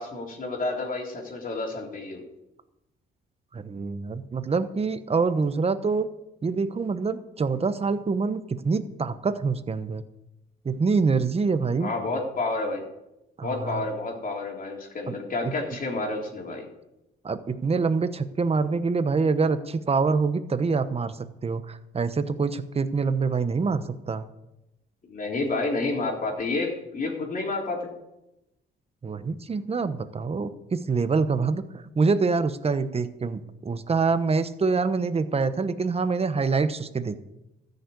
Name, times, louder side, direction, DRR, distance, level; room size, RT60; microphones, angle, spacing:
voice 1, 0.0-2.2 11.8-12.9 13.4-16.7 25.0-27.9, left 3 dB, 45° left, 0 dB, 3.6 m, -30 dB
voice 2, 3.5-6.1 6.4-10.0 10.6-11.9 13.4-13.9 15.1-15.2 15.4-15.5 17.2-21.2 21.4-24.2 29.0-31.6 32.0-37.2, right 4 dB, 30° right, 11 dB, 1.0 m, -25 dB
13.5 x 6.7 x 8.5 m, 0.92 s
cardioid pair, 90°, 20 cm